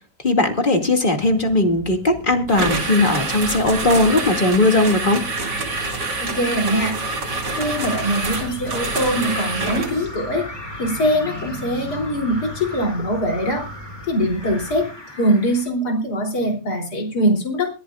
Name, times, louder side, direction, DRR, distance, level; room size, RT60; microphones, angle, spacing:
voice 1, 0.2-5.3, left 2 dB, 30° left, 4 dB, 2.4 m, -18 dB
sound 1, 1.2-14.8, equal, 25° right, 8.2 m, -38 dB
sound 2, 2.5-10.0, right 3 dB, 85° right, 3.2 m, -26 dB
sound 3, 5.4-15.7, left 1 dB, 15° left, 2.6 m, -38 dB
voice 2, 6.2-7.0 7.6-10.5 10.8-13.6 14.1-14.9 15.1-17.7, equal, 65° left, 2 dB, 4.0 m, -22 dB
23.0 x 13.5 x 2.5 m, 0.32 s
omnidirectional pair, 1.8 m